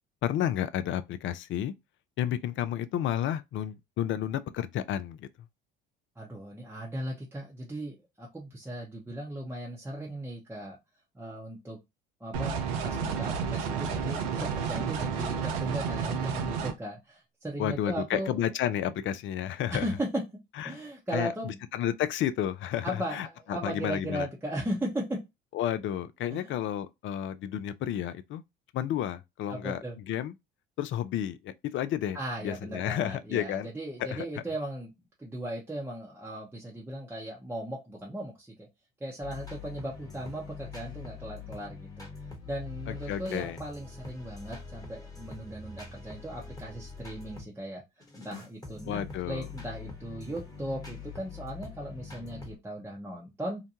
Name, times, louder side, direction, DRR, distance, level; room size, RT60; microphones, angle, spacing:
voice 1, 0.2-1.7 2.2-5.3 17.6-19.9 20.6-20.8 21.1-24.3 25.5-28.4 28.7-29.8 30.1-30.3 30.8-33.7 34.1-34.3 42.9-43.6 48.9-49.5, left 10 dB, 40° left, 0.4 m, -31 dB
voice 2, 6.2-10.8 11.1-11.8 12.2-18.5 19.7-20.2 20.6-21.6 22.8-25.2 26.3-26.6 29.5-30.0 32.1-34.9 35.2-38.7 39.0-42.1 42.5-47.8 48.2-53.6, right 1 dB, 5° right, 0.8 m, -37 dB
sound 1, 12.3-16.7, right 6 dB, 75° right, 0.6 m, -31 dB
sound 2, 39.2-47.5 48.0-52.6, left 5 dB, 10° left, 1.1 m, -44 dB
2.8 x 2.1 x 2.8 m
hypercardioid pair, 60°, 30 cm